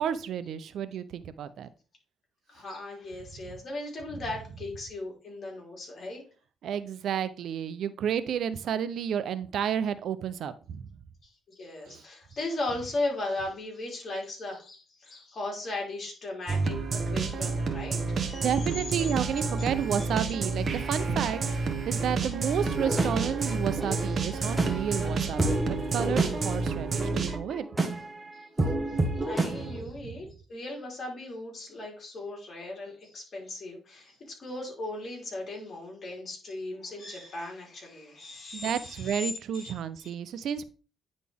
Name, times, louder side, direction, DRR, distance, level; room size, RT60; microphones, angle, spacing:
voice 1, 0.0-1.7 3.4-3.5 6.6-10.9 11.9-12.0 18.4-25.6 25.9-27.7 28.9-30.1 38.5-40.6, right 8 dB, 70° right, 13 dB, 0.6 m, -31 dB
voice 2, 2.5-6.2 11.2-19.2 28.3-39.7, left 2 dB, 45° left, -1 dB, 3.6 m, -37 dB
sound 1, 16.5-27.4, right 4 dB, 45° right, 1.2 m, -30 dB
Alarm, 19.1-25.3, equal, 10° left, 3.1 m, -45 dB
sound 2, 22.6-29.8, right 2 dB, 15° right, 1.4 m, -31 dB
9.5 x 4.1 x 3.5 m, 0.36 s
cardioid pair, 90°, 0 cm